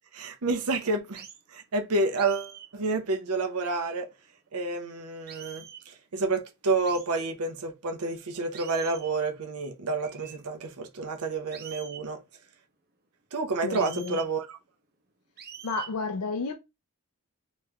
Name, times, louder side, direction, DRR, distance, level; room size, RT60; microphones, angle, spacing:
voice 1, 0.1-1.3 1.5-4.1 4.5-12.2 13.3-14.6, right 3 dB, 90° right, 0.8 m, -29 dB
sound 1, 1.1-1.4 2.2-2.7 3.6-4.0 5.3-5.9 6.9-7.1 8.5-9.2 10.0-10.4 11.5-12.1 13.7-14.3 15.4-15.9, right 8 dB, 45° right, 0.8 m, -45 dB
voice 2, 13.6-14.2 15.6-16.5, left 3 dB, 85° left, 0.5 m, -31 dB
3.2 x 3.0 x 3.5 m
head